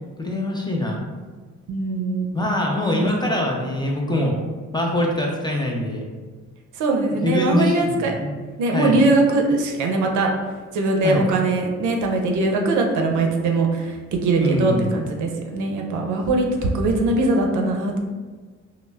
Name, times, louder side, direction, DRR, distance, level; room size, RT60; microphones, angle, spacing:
voice 1, 0.2-1.0 2.3-4.4 4.7-6.0 7.2-8.4 8.7-9.0 11.0-11.3 14.4-15.0, left 1 dB, 15° left, -1 dB, 0.4 m, -23 dB
voice 2, 1.7-2.3 2.8-3.1 6.7-8.1 8.6-10.3 10.7-18.0, right 2 dB, 75° right, 2 dB, 0.5 m, -21 dB
2.1 x 2.0 x 3.2 m, 1.4 s
cardioid pair, 90°, 30 cm